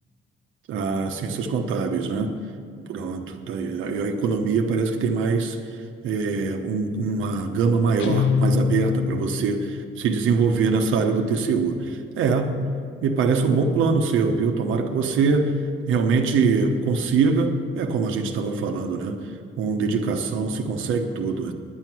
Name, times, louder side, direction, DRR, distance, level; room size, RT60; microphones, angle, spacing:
voice 1, 0.7-2.4 2.8-5.6 6.0-12.6 13.0-15.5 15.9-19.2 19.6-21.5, right 4 dB, 85° right, 5 dB, 1.0 m, -23 dB
Guitar, 8.0-9.7, left 6 dB, 70° left, 0.9 m, -23 dB
10.5 x 9.3 x 6.1 m, 2.3 s
cardioid pair, 90°, 20 cm